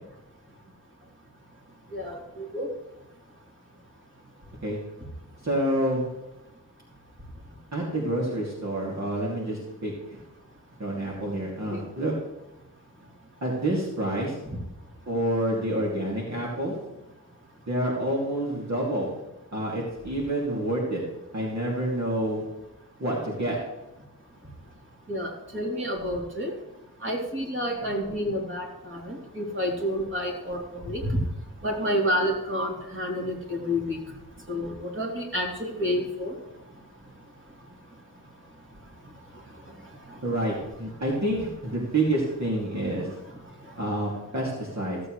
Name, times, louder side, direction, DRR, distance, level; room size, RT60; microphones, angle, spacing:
voice 1, 1.9-2.7 11.7-11.8 25.1-26.5 27.0-30.6 30.8-31.2 31.6-34.0 34.5-36.3, equal, 35° right, -2 dB, 3.2 m, -29 dB
voice 2, 5.4-6.1 7.7-10.2 10.8-12.1 13.4-14.3 15.1-16.7 17.7-19.1 19.5-21.0 21.3-22.4 23.0-23.6 40.2-43.1 43.8-45.0, right 1 dB, 50° right, -4 dB, 2.6 m, -28 dB
15.5 x 8.3 x 3.2 m, 0.96 s
wide cardioid pair, 65°, 35 cm